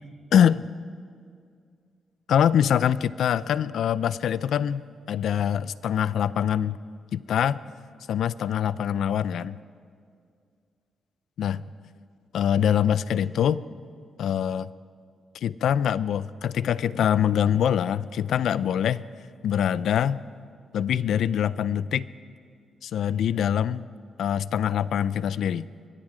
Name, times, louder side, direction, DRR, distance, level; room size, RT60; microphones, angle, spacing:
voice 1, 0.3-0.7 2.3-6.8 7.1-7.6 8.1-9.6 11.4-11.6 12.3-13.6 14.2-14.7 15.4-19.0 19.4-20.2 20.7-22.1 22.8-23.8 24.2-25.7, left 9 dB, 75° left, 17 dB, 0.5 m, -24 dB
23.5 x 22.5 x 5.1 m, 2.2 s
cardioid pair, 120°, 0 cm